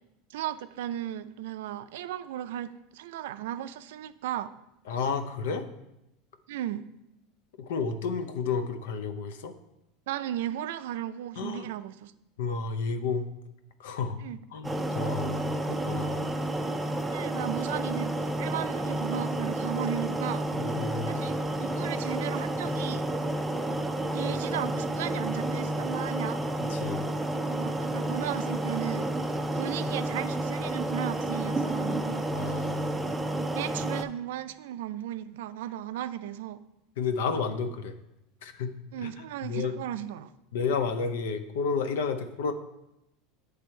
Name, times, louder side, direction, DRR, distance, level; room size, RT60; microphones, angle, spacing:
voice 1, 0.3-4.5 6.5-6.8 10.1-12.1 14.2-14.4 17.1-20.5 21.1-23.0 24.1-26.4 27.5-32.3 33.5-36.6 38.9-40.3, right 12 dB, 80° right, 0.3 m, -35 dB
voice 2, 4.9-5.7 7.6-9.5 11.4-11.7 12.4-13.3 13.8-14.2 14.5-16.3 20.5-21.3 26.7-27.1 32.3-33.1 37.0-37.9 38.4-39.1 39.4-39.8 40.5-42.5, left 5 dB, 80° left, 0.6 m, -31 dB
sound 1, 14.6-34.1, right 1 dB, 5° right, 0.5 m, -30 dB
8.3 x 3.4 x 4.4 m
supercardioid pair, 110°, 0 cm